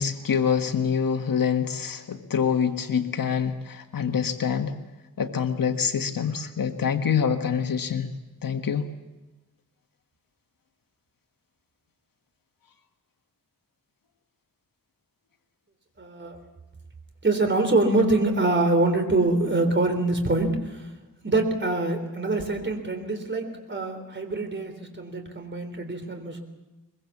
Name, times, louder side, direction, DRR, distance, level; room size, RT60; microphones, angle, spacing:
voice 1, 0.0-4.7 5.2-8.1 8.4-8.8, left 7 dB, 70° left, 6 dB, 1.6 m, -25 dB
voice 2, 16.0-16.4 17.2-20.9 21.2-26.4, right 2 dB, 35° right, 5 dB, 3.8 m, -24 dB
23.0 x 22.0 x 7.2 m, 1.1 s
wide cardioid pair, 115°, 35 cm